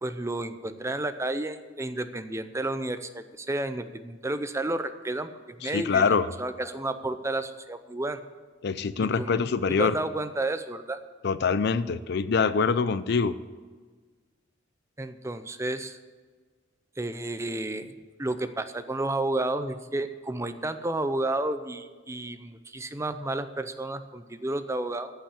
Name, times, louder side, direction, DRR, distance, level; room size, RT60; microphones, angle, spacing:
voice 1, 0.0-5.3 5.6-8.2 9.1-9.4 9.7-11.0 15.0-16.0 17.0-25.1, right 2 dB, 15° right, 10 dB, 0.6 m, -31 dB
voice 2, 5.6-6.3 8.6-10.0 11.2-13.4, left 5 dB, 60° left, 15 dB, 0.4 m, -24 dB
14.5 x 5.6 x 8.5 m, 1.4 s
head